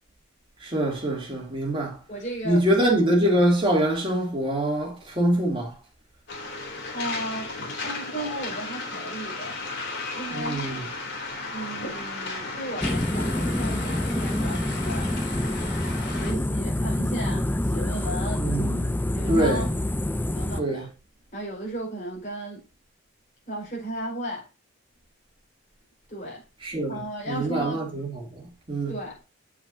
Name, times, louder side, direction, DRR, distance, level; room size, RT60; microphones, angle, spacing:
voice 1, 0.6-2.0 2.4-5.8 10.3-10.9 18.4-19.0 19.3-19.7 20.6-20.9 26.6-27.0 27.3-29.0, right 1 dB, 25° right, 2.8 m, -24 dB
voice 2, 2.1-2.7 6.9-7.6 7.8-9.6 10.1-10.6 11.5-15.1 16.1-18.4 19.1-19.7 20.3-20.9 21.3-22.6 23.5-24.5 26.1-26.4 26.9-27.8 28.9-29.2, right 1 dB, 35° left, 4.8 m, -35 dB
Waves surf, 6.3-16.3, left 3 dB, 55° left, 3.2 m, -35 dB
sound 1, 12.8-20.6, left 1 dB, 10° left, 0.4 m, -27 dB
8.1 x 7.6 x 2.7 m
head